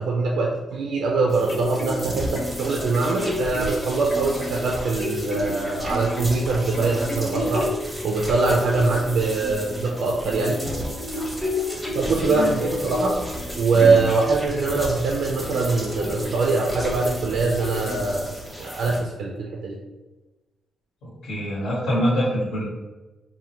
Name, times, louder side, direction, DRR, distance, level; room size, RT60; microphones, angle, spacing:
voice 1, 0.0-7.7 8.0-10.6 11.9-13.2 13.6-18.3 18.6-19.8, right 3 dB, 75° right, 0 dB, 0.3 m, -23 dB
sound 1, 1.2-18.3 18.8-18.9, left 1 dB, 25° left, 0.9 m, -33 dB
sound 2, 1.3-19.0, equal, ahead, 0.6 m, -35 dB
voice 2, 21.0-22.6, equal, 65° left, -7 dB, 0.9 m, -25 dB
3.3 x 2.1 x 2.8 m, 1.2 s
wide cardioid pair, 155°, 0 cm